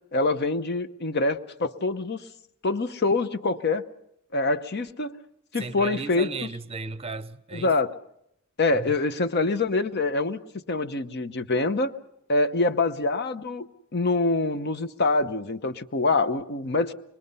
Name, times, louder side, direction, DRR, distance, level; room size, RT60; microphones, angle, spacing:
voice 1, 0.1-2.2 2.6-3.8 4.3-5.2 5.5-6.3 7.5-7.9 8.6-11.9 12.3-13.7 13.9-16.9, left 3 dB, 50° left, 0.9 m, -25 dB
voice 2, 5.6-7.7 8.7-8.9, right 3 dB, 30° right, 0.7 m, -35 dB
25.0 x 22.0 x 5.5 m
head